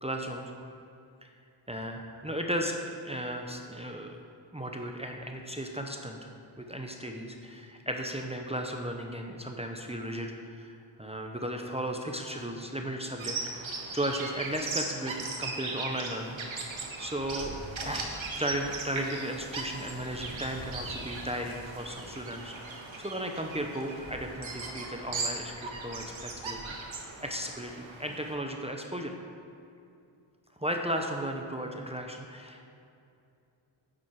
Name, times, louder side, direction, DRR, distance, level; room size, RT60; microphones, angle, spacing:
voice 1, 0.0-0.5 1.7-4.2 4.5-6.3 6.6-13.4 13.9-16.4 17.0-17.5 17.8-26.6 26.9-29.2 30.6-32.7, equal, 15° right, 2 dB, 0.8 m, -35 dB
Bird vocalization bird call bird song, 13.2-28.3, right 3 dB, 70° right, 1.5 m, -38 dB
10.0 x 7.7 x 4.7 m, 2.6 s
wide cardioid pair, 80°, 49 cm